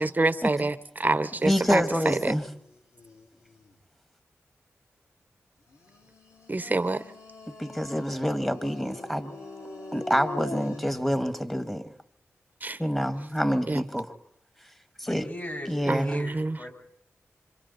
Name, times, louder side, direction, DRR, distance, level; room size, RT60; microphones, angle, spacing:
voice 1, 0.0-2.3 6.5-7.0 12.6-12.8 13.7-13.8 15.9-16.6, right 2 dB, 35° right, 13 dB, 1.0 m, -26 dB
voice 2, 1.4-2.4 7.5-9.3 9.9-11.9 12.8-14.1 15.0-15.3 15.7-16.2, equal, 5° left, 10 dB, 1.7 m, -27 dB
sound 1, 2.1-3.8 5.7-11.1, left 2 dB, 85° left, 2.9 m, -43 dB
voice 3, 15.1-16.7, equal, 40° left, 3 dB, 5.4 m, -39 dB
26.5 x 25.0 x 4.2 m, 0.68 s
cardioid pair, 45°, 5 cm